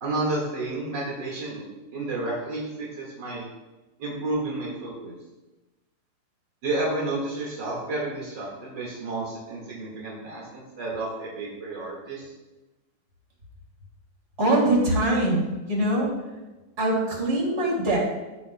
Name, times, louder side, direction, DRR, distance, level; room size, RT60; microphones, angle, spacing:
voice 1, 0.0-1.6 1.9-3.5 4.0-5.1 6.6-12.3, right 2 dB, 50° right, -4 dB, 1.4 m, -31 dB
voice 2, 14.4-16.1 16.8-18.0, right 1 dB, 30° right, -3 dB, 2.4 m, -23 dB
14.0 x 10.0 x 2.3 m, 1.1 s
omnidirectional pair, 4.9 m